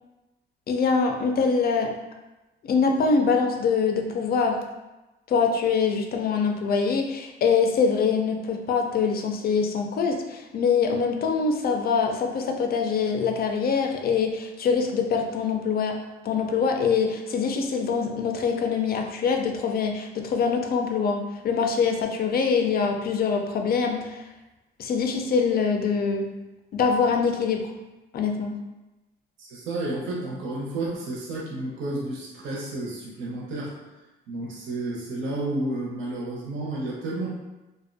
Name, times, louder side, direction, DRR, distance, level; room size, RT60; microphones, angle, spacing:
voice 1, 0.7-2.0 2.6-4.6 5.3-16.0 16.2-24.2 24.8-26.3 26.7-27.7 28.1-28.6, left 5 dB, 50° left, 3 dB, 0.4 m, -24 dB
voice 2, 29.4-33.7 34.3-37.3, right 2 dB, 75° right, -4 dB, 0.6 m, -31 dB
2.4 x 2.1 x 2.5 m, 1.1 s
cardioid pair, 90°, 20 cm